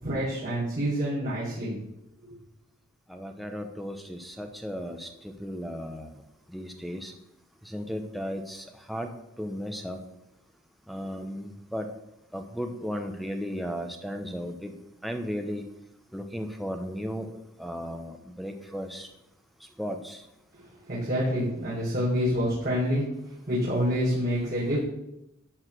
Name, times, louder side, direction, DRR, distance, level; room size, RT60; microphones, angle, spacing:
voice 1, 0.0-1.8 20.5-23.0 23.5-24.8, equal, 35° right, -8 dB, 4.1 m, -27 dB
voice 2, 3.1-6.1 6.5-7.1 7.7-9.1 9.4-10.0 10.9-11.9 12.3-14.7 15.0-15.7 16.1-17.3 17.6-19.1 19.8-20.2, equal, ahead, 6 dB, 0.9 m, -35 dB
13.0 x 4.9 x 7.6 m, 0.84 s
head